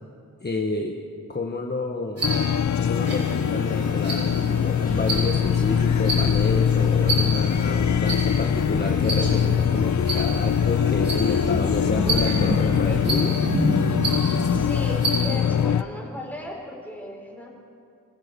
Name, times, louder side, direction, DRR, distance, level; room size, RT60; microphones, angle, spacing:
voice 1, 0.4-0.9 1.3-2.4 2.7-13.4, left 3 dB, 30° left, 2 dB, 1.4 m, -29 dB
sound 1, 2.2-15.8, left 8 dB, 60° left, 0.6 m, -23 dB
sound 2, 2.2-15.4, right 1 dB, 50° right, 7.2 m, -29 dB
sound 3, 4.9-13.1, equal, 15° right, 1.9 m, -35 dB
voice 2, 14.5-17.5, left 1 dB, 5° left, -2 dB, 4.8 m, -36 dB
25.0 x 15.5 x 6.9 m, 2.4 s
wide cardioid pair, 95°, 32 cm